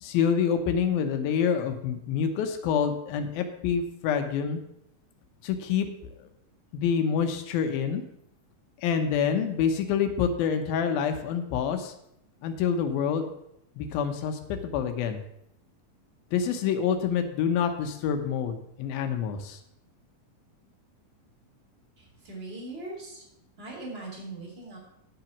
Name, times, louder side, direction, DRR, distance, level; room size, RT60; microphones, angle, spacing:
voice 1, 0.0-4.6 5.4-5.9 6.7-8.0 8.8-11.9 12.4-13.3 13.8-15.2 16.3-19.6, left 7 dB, 90° left, 6 dB, 2.8 m, -27 dB
voice 2, 22.0-23.2 23.6-24.8, right 2 dB, 15° right, -3 dB, 3.2 m, -40 dB
10.5 x 6.0 x 7.2 m, 0.77 s
omnidirectional pair, 4.1 m